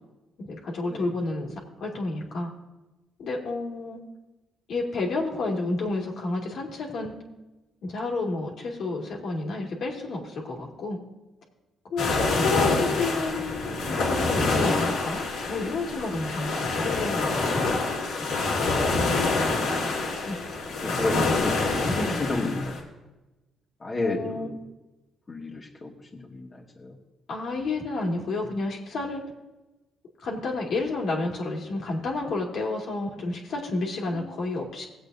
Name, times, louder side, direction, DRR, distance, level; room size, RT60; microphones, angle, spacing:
voice 1, 0.4-1.5 1.8-2.5 3.2-4.0 4.7-7.2 7.8-11.0 11.8-17.7 20.2-20.4 21.1-21.5 22.0-22.1 23.9-24.5 27.3-29.2 30.2-34.9, left 3 dB, 65° left, -1 dB, 2.3 m, -30 dB
sound 1, 12.0-22.8, left 3 dB, 85° left, 2.7 m, -26 dB
voice 2, 20.8-22.8 23.8-24.5 25.3-27.0 34.1-34.3, left 2 dB, 30° left, -2 dB, 1.9 m, -32 dB
19.0 x 8.0 x 2.7 m, 1.1 s
cardioid pair, 90°, 0 cm